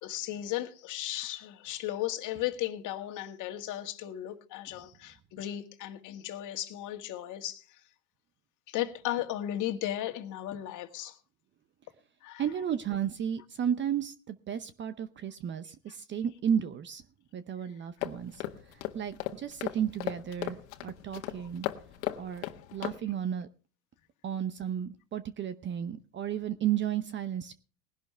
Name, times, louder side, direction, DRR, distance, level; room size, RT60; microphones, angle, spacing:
voice 1, 0.0-7.8 8.7-11.2 12.2-12.4, left 13 dB, 45° left, 1.9 m, -35 dB
voice 2, 12.4-17.0 17.3-18.4 18.7-21.6 22.1-23.5 24.2-27.5, right 9 dB, 25° right, 0.8 m, -33 dB
sound 1, 18.0-23.0, left 15 dB, 70° left, 1.6 m, -37 dB
19.5 x 11.0 x 3.4 m
hypercardioid pair, 105°, 43 cm